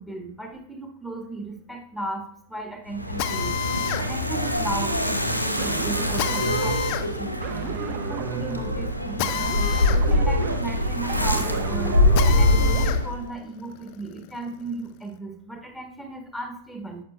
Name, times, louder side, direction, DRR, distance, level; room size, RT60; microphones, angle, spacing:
voice 1, 0.0-3.6 4.0-7.3 7.6-12.0 12.2-17.0, right 2 dB, ahead, 2 dB, 1.3 m, -36 dB
sound 1, 2.9-13.3, left 1 dB, 90° right, 0.7 m, -24 dB
Drill, 3.2-13.0 13.5-15.1, left 10 dB, 45° left, 0.5 m, -32 dB
sound 2, 5.6-12.9, right 8 dB, 40° right, 0.7 m, -33 dB
11.0 x 7.1 x 2.2 m, 0.64 s
figure-of-eight pair, 90°, 0 cm